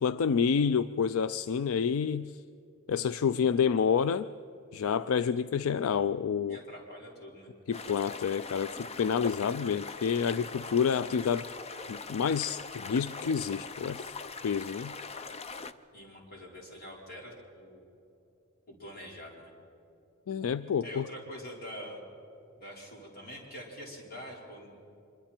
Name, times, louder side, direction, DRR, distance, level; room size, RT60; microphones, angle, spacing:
voice 1, 0.0-2.4 2.9-4.3 4.7-6.6 7.7-11.5 11.9-14.1 14.4-14.9 20.3-21.1, left 6 dB, 75° left, 14 dB, 0.4 m, -28 dB
voice 2, 6.5-7.6 15.9-17.8 18.7-19.5 20.8-22.0 22.6-24.7, equal, 45° left, -2 dB, 4.6 m, -45 dB
sound 1, 7.7-15.7, left 4 dB, 30° left, 0.6 m, -42 dB
25.0 x 23.5 x 4.4 m, 2.9 s
head